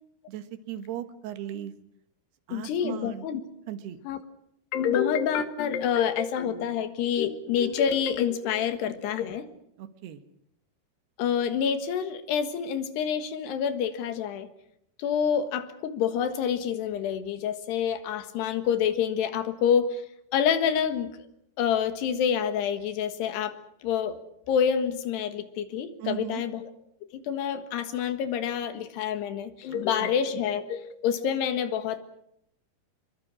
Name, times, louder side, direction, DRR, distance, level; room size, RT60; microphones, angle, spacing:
voice 1, 0.3-1.7 2.5-3.3 3.7-4.0 9.8-10.2 26.0-26.4 29.7-30.1, right 11 dB, 80° right, 10 dB, 3.4 m, -37 dB
voice 2, 2.5-3.4 4.1-4.2 4.7-9.5 11.2-14.5 15.0-20.0 20.3-21.1 21.6-24.2 24.5-26.6 27.1-32.0, left 8 dB, 85° left, 10 dB, 3.7 m, -27 dB
26.5 x 23.0 x 6.3 m, 0.76 s
omnidirectional pair, 4.6 m